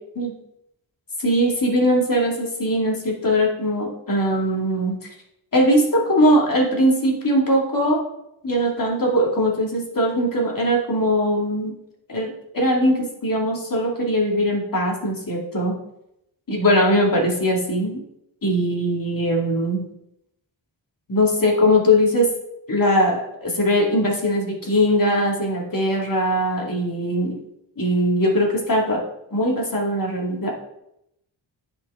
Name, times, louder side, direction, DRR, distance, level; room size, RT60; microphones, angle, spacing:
voice 1, 1.2-4.9 5.5-8.0 8.4-11.7 12.1-15.7 16.5-18.0 18.4-19.9 21.1-22.3 22.7-27.4 27.8-29.0 29.3-30.5, equal, 45° left, -1 dB, 2.4 m, -20 dB
9.9 x 5.3 x 3.7 m, 0.81 s
cardioid pair, 75°, 48 cm